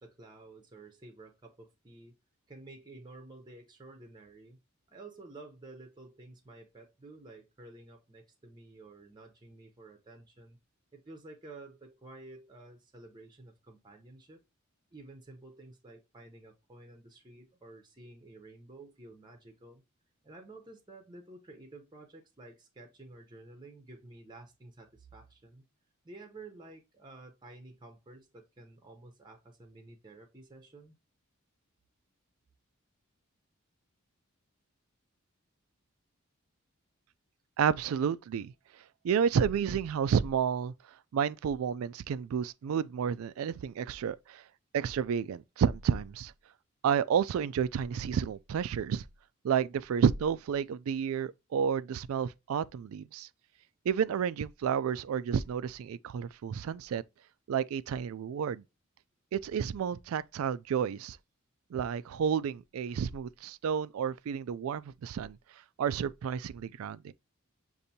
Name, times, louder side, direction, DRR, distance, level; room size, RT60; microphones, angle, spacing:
voice 1, 0.0-2.2 2.5-4.6 4.9-10.6 10.9-14.4 14.9-19.8 20.2-25.6 26.0-30.9, right 2 dB, 20° right, 0.7 m, -51 dB
voice 2, 37.6-38.5 39.0-40.7 41.1-44.4 44.7-46.3 46.8-49.0 49.4-53.3 53.9-57.0 57.5-58.6 59.3-61.2 61.7-65.4 65.8-67.1, right 7 dB, 70° right, 0.3 m, -30 dB
6.5 x 2.6 x 2.7 m
head